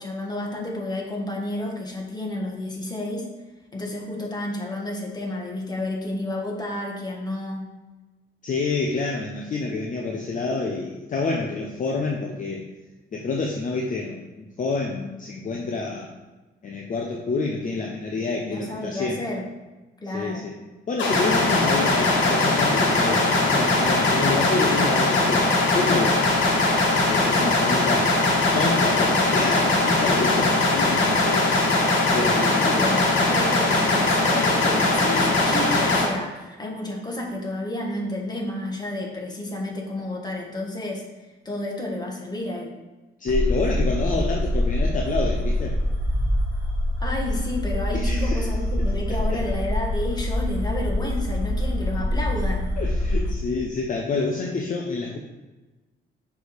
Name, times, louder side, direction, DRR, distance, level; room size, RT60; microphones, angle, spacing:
voice 1, 0.0-3.3 3.7-7.7 18.4-19.4 20.0-20.5 27.3-27.7 32.3-41.0 41.4-42.7 47.0-52.7, left 1 dB, 20° left, -1 dB, 1.6 m, -31 dB
voice 2, 8.4-12.6 13.1-16.1 16.6-19.2 20.1-20.5 20.9-26.3 27.1-28.2 28.5-31.5 32.1-32.4 43.2-45.7 47.9-48.5 49.3-49.4 52.8-55.2, left 3 dB, 40° left, 0 dB, 0.7 m, -28 dB
sound 1, 21.0-36.0, left 2 dB, 70° left, 1.4 m, -20 dB
sound 2, 43.3-53.3, left 1 dB, 5° left, 1.6 m, -25 dB
6.1 x 3.5 x 4.8 m, 1.2 s
cardioid pair, 90°, 20 cm